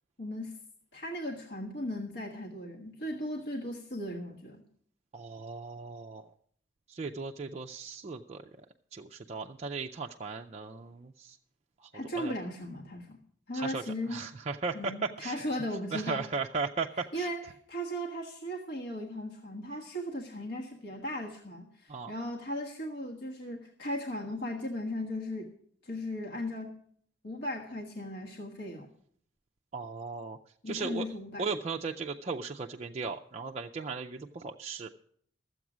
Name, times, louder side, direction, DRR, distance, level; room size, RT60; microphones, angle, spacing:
voice 1, 0.2-0.5 0.9-4.6 11.9-13.2 13.5-14.2 14.7-16.3 17.1-25.5 25.8-26.8 27.2-28.9 30.6-31.5, equal, 60° left, -1 dB, 1.4 m, -37 dB
voice 2, 5.1-6.2 6.9-8.4 8.9-11.4 11.8-11.9 12.1-12.3 13.5-13.8 14.1-14.9 15.2-15.3 15.9-17.3 21.9-22.1 29.7-30.4 30.7-31.1 31.4-34.9, right 4 dB, 35° right, 1 dB, 0.4 m, -36 dB
13.5 x 7.9 x 6.1 m, 0.63 s
head